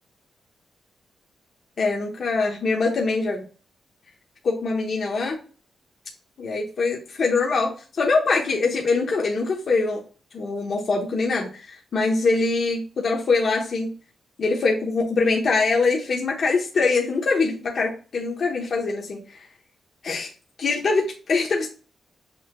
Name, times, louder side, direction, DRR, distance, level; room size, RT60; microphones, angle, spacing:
voice 1, 1.8-3.4 4.4-5.4 6.4-10.0 10.3-13.9 14.4-19.5 20.0-20.3 20.6-21.7, left 3 dB, 55° left, -1 dB, 1.0 m, -23 dB
7.0 x 3.0 x 2.3 m, 0.37 s
cardioid pair, 110°, 0 cm